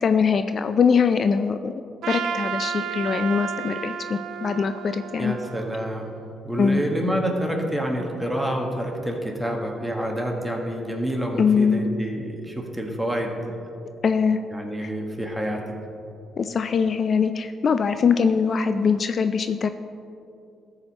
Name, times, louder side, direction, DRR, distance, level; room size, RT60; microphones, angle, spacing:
voice 1, 0.0-1.7 2.1-5.3 6.6-6.8 11.4-11.8 14.0-14.4 14.8-14.9 16.4-19.7, left 6 dB, 50° left, 9 dB, 0.3 m, -22 dB
Trumpet, 2.0-6.3, right 7 dB, 75° right, 0.4 m, -32 dB
voice 2, 5.2-6.1 6.4-13.3 14.5-15.7, equal, ahead, 1 dB, 1.6 m, -28 dB
13.5 x 4.9 x 4.2 m, 2.7 s
supercardioid pair, 65°, 0 cm